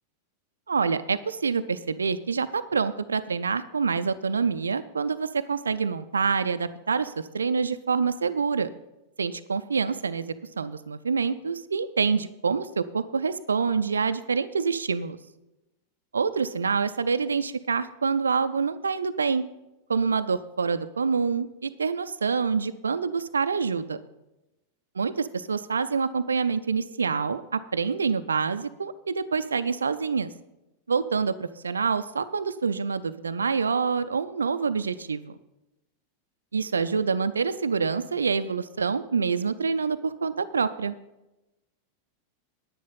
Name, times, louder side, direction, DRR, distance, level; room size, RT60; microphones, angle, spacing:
voice 1, 0.7-8.7 9.2-15.2 16.1-19.4 19.9-24.0 25.0-30.3 30.9-35.4 36.5-41.0, right 5 dB, 75° right, 11 dB, 0.4 m, -26 dB
10.5 x 9.2 x 5.6 m, 0.97 s
figure-of-eight pair, 90°, 0 cm